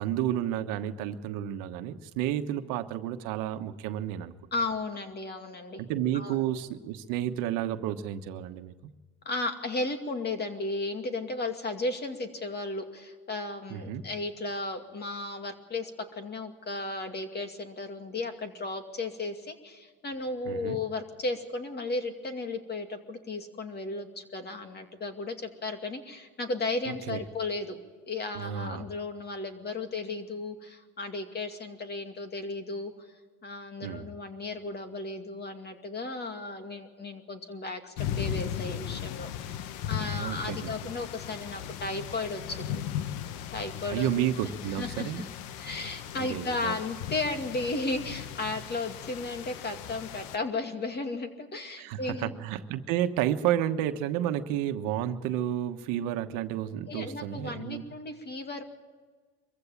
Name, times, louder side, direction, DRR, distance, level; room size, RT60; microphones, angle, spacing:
voice 1, 0.0-4.3 5.8-8.7 13.7-14.0 20.5-20.8 26.9-27.2 28.3-28.8 33.8-34.1 40.2-40.7 43.9-45.2 46.2-46.7 51.8-57.9, right 11 dB, 80° right, 8 dB, 1.3 m, -31 dB
voice 2, 4.5-5.8 6.1-6.4 9.2-27.8 28.1-32.9 33.4-39.6 39.9-42.8 43.5-44.1 44.7-45.3 45.6-52.3 56.9-58.6, left 2 dB, 30° left, 6 dB, 2.4 m, -35 dB
sound 1, 38.0-50.4, left 10 dB, 85° left, 1.1 m, -37 dB
23.5 x 15.5 x 7.3 m, 1.5 s
cardioid pair, 120°, 33 cm